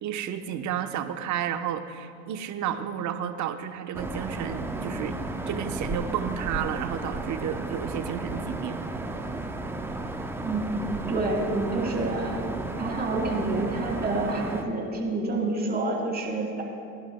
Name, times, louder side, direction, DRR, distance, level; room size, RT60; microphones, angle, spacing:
voice 1, 0.0-5.2 5.5-8.8, right 9 dB, 40° right, 7 dB, 1.0 m, -32 dB
sound 1, 3.9-14.6, right 2 dB, 5° right, 0.7 m, -33 dB
voice 2, 10.4-12.4 12.8-16.6, right 2 dB, 20° right, -2 dB, 3.1 m, -28 dB
21.5 x 11.5 x 2.2 m, 2.3 s
hypercardioid pair, 95°, 43 cm